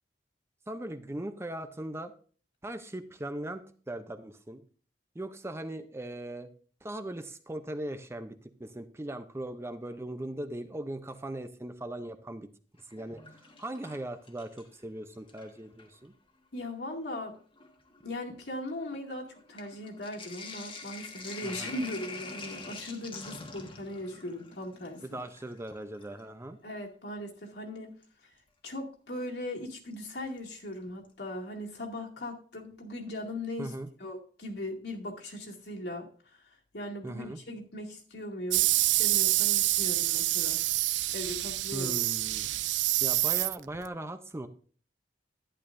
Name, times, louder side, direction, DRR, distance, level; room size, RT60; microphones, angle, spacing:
voice 1, 0.7-2.1 2.6-4.6 5.1-6.5 6.8-12.5 12.9-16.1 21.4-21.8 25.0-26.6 33.6-33.9 37.0-37.4 41.7-42.5 43.0-44.5, right 1 dB, 15° right, 9 dB, 0.6 m, -39 dB
Sink (filling or washing), 12.8-14.8 15.1-16.0 16.8-16.9 17.1-26.3 28.0-28.1 29.9-30.4 30.7-30.8 31.0-31.1, left 3 dB, 30° left, 1.4 m, -46 dB
voice 2, 16.5-17.4 18.0-25.2 26.6-28.0 28.2-28.3 28.6-33.7 34.0-40.6 41.1-41.9, left 1 dB, 70° left, 0 dB, 2.3 m, -39 dB
sound 1, 38.5-43.9, right 17 dB, 85° right, 0.4 m, -27 dB
11.5 x 10.5 x 2.6 m, 0.42 s
head